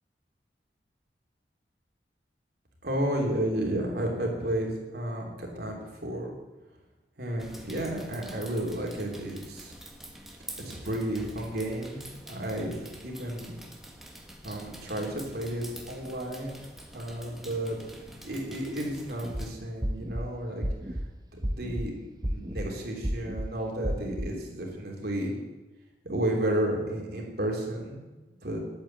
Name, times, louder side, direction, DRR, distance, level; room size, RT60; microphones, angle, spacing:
voice 1, 2.8-6.3 7.2-9.7 10.6-13.6 14.4-16.6 16.9-17.8 18.2-20.6 21.3-25.3 26.0-28.0 28.4-28.6, right 1 dB, 60° right, -1 dB, 3.2 m, -32 dB
sound 1, 7.4-19.5, equal, ahead, 1.4 m, -46 dB
sound 2, 19.2-19.4 19.8-20.2 20.6-21.0 21.4-21.8 22.2-22.7 23.0-23.5 23.8-24.3, equal, 20° right, 0.9 m, -31 dB
11.0 x 9.1 x 7.5 m, 1.2 s
head